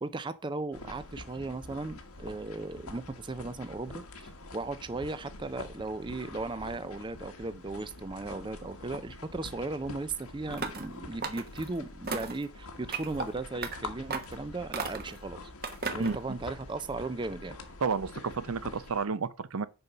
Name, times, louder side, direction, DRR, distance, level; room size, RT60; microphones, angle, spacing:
voice 1, 0.0-15.4 15.9-17.6, right 3 dB, 20° right, 0.4 m, -36 dB
sound 1, 0.7-19.1, left 2 dB, 90° left, 1.5 m, -46 dB
sound 2, 10.5-10.9 11.2-11.7 12.1-12.4 12.9-13.3 13.6-13.8 14.1-14.4 14.7-15.2 15.6-16.2, right 4 dB, 45° right, 1.2 m, -35 dB
voice 2, 17.8-19.7, right 5 dB, 75° right, 0.6 m, -31 dB
6.9 x 5.3 x 5.6 m
head